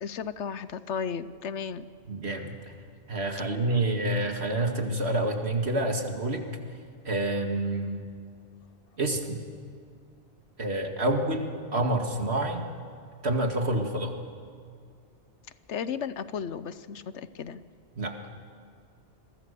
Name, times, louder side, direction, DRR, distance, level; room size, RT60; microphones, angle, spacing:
voice 1, 0.0-1.9 15.7-17.6, left 7 dB, 85° left, 14 dB, 1.2 m, -34 dB
voice 2, 2.1-2.6 3.1-6.5 7.1-8.0 9.0-9.4 10.6-12.7 13.2-14.1 18.0-18.2, right 1 dB, 65° right, 4 dB, 2.4 m, -28 dB
28.0 x 23.0 x 6.9 m, 2.3 s
omnidirectional pair, 1.2 m